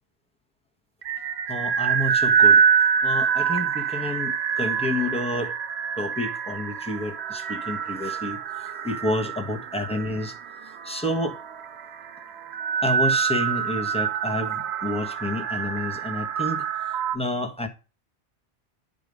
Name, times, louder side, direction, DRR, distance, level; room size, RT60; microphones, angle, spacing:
sound 1, 1.0-17.2, right 7 dB, 75° right, 1.0 m, -25 dB
voice 1, 1.5-2.6 3.0-5.5 6.0-10.3 10.6-11.4 12.8-16.6 17.1-17.7, left 1 dB, 5° left, 1.2 m, -29 dB
9.5 x 5.0 x 5.3 m
omnidirectional pair, 1.1 m